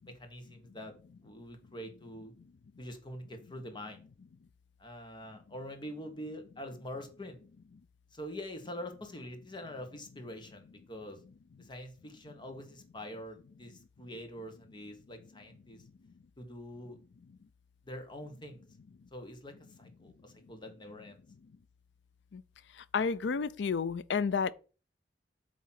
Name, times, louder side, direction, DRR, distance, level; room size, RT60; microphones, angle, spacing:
voice 1, 0.1-0.9 1.2-2.3 2.8-4.0 4.8-7.4 8.1-11.2 11.6-15.8 16.4-17.0 17.8-18.6 19.1-19.5 19.8-21.1, equal, 25° left, 1.3 m, -45 dB
voice 2, 22.9-24.5, left 5 dB, 85° left, 0.4 m, -30 dB
8.5 x 3.1 x 5.7 m
head